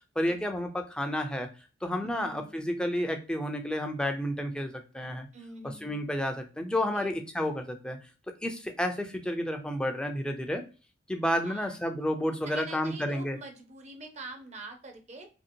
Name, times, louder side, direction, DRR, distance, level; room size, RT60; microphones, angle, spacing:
voice 1, 0.2-1.5 1.8-5.3 5.8-8.0 8.4-10.6 11.1-13.4, equal, 5° left, 5 dB, 0.4 m, -31 dB
voice 2, 2.0-2.6 5.3-6.0 6.9-7.1 11.4-11.8 12.4-15.3, right 2 dB, 35° right, 4 dB, 0.7 m, -45 dB
2.9 x 2.8 x 2.5 m, 0.34 s
head